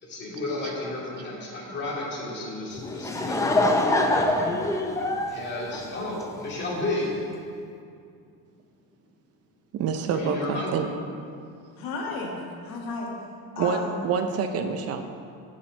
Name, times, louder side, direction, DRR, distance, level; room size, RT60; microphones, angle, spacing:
voice 1, 0.0-4.7 5.3-7.1 10.1-10.7, left 2 dB, 30° left, -4 dB, 2.4 m, -33 dB
Laughter / Crowd, 2.7-6.5, left 1 dB, 10° left, 0.4 m, -24 dB
voice 2, 9.7-10.9 13.6-15.0, right 6 dB, 45° right, 7 dB, 0.6 m, -27 dB
voice 3, 11.8-13.1 13.6-14.0, left 3 dB, 80° left, -1 dB, 1.8 m, -33 dB
7.3 x 6.3 x 7.4 m, 2.4 s
cardioid pair, 160°, 34 cm